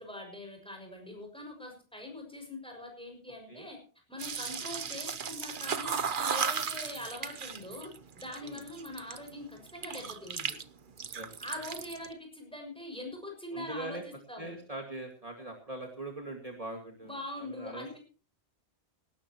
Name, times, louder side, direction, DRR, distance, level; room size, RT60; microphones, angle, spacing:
voice 1, 0.0-3.8 4.1-7.9 8.2-10.6 11.4-14.6 17.0-18.0, left 1 dB, 5° left, 3 dB, 6.3 m, -43 dB
sound 1, 4.2-9.3 9.7-10.6 10.9-12.1, right 6 dB, 50° right, 1.0 m, -35 dB
voice 2, 13.5-14.0 14.4-18.0, right 2 dB, 35° right, 2 dB, 2.3 m, -42 dB
18.5 x 17.5 x 3.1 m, 0.39 s
omnidirectional pair, 1.1 m